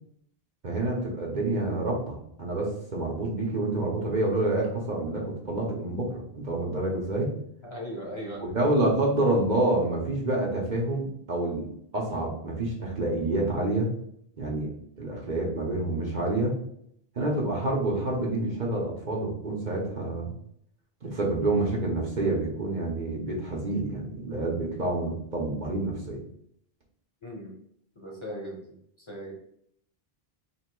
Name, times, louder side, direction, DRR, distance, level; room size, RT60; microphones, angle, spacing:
voice 1, 0.6-7.3 8.4-11.7 11.9-13.9 14.4-14.7 15.0-16.5 17.2-20.3 21.0-26.2, right 2 dB, 50° right, -2 dB, 0.9 m, -28 dB
voice 2, 7.6-8.4 27.2-27.5 28.0-28.8 29.1-29.3, equal, 30° left, -3 dB, 0.9 m, -38 dB
3.0 x 2.8 x 4.4 m, 0.71 s
omnidirectional pair, 1.0 m